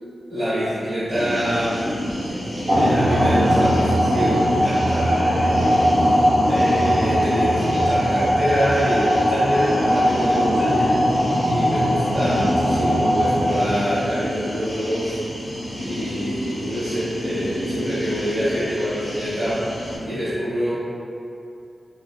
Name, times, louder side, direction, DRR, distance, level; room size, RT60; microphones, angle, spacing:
voice 1, 0.0-1.8 2.7-11.0 11.4-15.5 15.8-19.7 20.0-20.7, equal, 50° right, -16 dB, 0.9 m, -26 dB
sound 1, 1.1-20.0, equal, 70° left, 0.8 m, -30 dB
sound 2, 2.7-14.0, equal, 25° right, 0.7 m, -20 dB
2.8 x 2.0 x 2.2 m, 2.6 s
wide cardioid pair, 170°, 0 cm